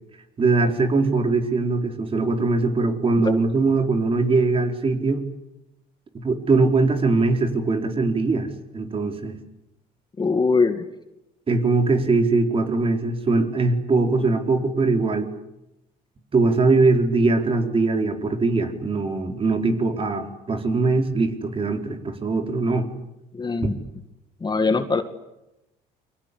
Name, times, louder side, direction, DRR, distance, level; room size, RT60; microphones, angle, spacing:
voice 1, 0.4-5.2 6.1-9.4 11.5-15.3 16.3-22.9 23.6-23.7, right 3 dB, 35° right, 5 dB, 4.5 m, -21 dB
voice 2, 10.2-10.8 23.3-23.8 24.4-25.0, left 4 dB, 25° left, 8 dB, 2.1 m, -21 dB
29.0 x 24.5 x 8.4 m, 0.91 s
cardioid pair, 110°, 17 cm